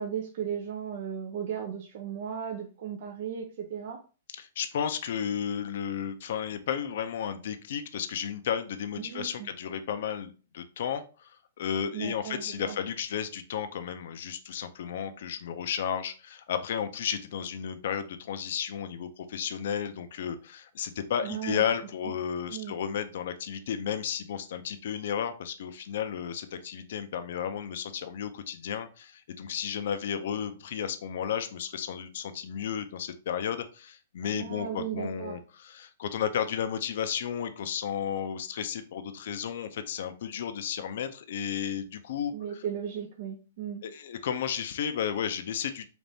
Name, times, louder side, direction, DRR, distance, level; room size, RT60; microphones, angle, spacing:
voice 1, 0.0-4.0 9.0-9.5 11.9-12.8 21.2-21.7 22.0-22.1 22.5-22.8 34.3-35.4 42.3-43.8, right 8 dB, 50° right, 3 dB, 0.6 m, -36 dB
voice 2, 4.4-11.3 11.6-42.6 43.8-45.9, left 8 dB, 60° left, 9 dB, 0.5 m, -33 dB
4.0 x 2.5 x 3.4 m, 0.35 s
hypercardioid pair, 155°, 0 cm